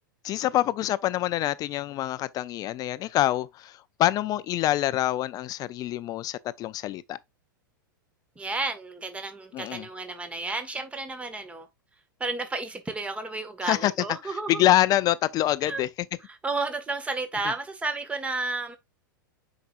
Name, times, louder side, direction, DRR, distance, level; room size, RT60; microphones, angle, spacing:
voice 1, 0.2-7.2 9.5-9.9 13.6-13.9 14.2-15.9 17.4-17.5, left 14 dB, 35° left, 0.4 m, -26 dB
voice 2, 8.3-11.7 12.2-14.6 15.7-15.8 16.3-18.8, right 3 dB, 10° right, 1.6 m, -32 dB
9.2 x 4.9 x 2.5 m
hypercardioid pair, 105°, 11 cm